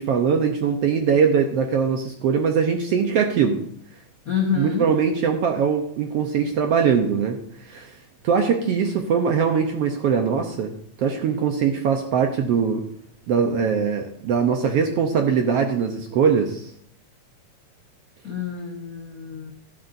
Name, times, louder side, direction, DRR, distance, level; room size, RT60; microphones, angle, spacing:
voice 1, 0.0-3.6 4.6-7.4 7.7-7.9 8.2-10.7 11.0-12.8 13.3-16.7, right 6 dB, 70° right, 4 dB, 1.5 m, -21 dB
voice 2, 4.3-4.9 18.2-19.5, left 7 dB, 85° left, 0 dB, 0.7 m, -27 dB
14.0 x 11.5 x 2.6 m, 0.69 s
omnidirectional pair, 3.6 m